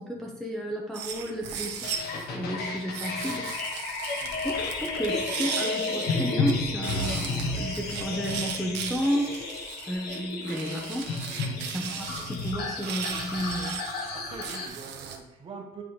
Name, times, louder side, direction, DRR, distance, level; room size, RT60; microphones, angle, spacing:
voice 1, 0.0-3.5 4.4-9.3 9.9-11.1 11.7-13.8, equal, ahead, -2 dB, 0.6 m, -32 dB
sound 1, 0.9-2.3 2.9-6.5 6.8-15.2, right 7 dB, 75° right, 1.0 m, -38 dB
sound 2, 1.8-14.7, left 3 dB, 65° left, 1.1 m, -32 dB
sound 3, 4.1-5.2, left 6 dB, 85° left, 0.7 m, -46 dB
voice 2, 11.4-11.8 14.1-15.8, right 4 dB, 30° right, 2 dB, 1.0 m, -44 dB
9.4 x 3.7 x 3.1 m, 0.97 s
cardioid pair, 155°, 18 cm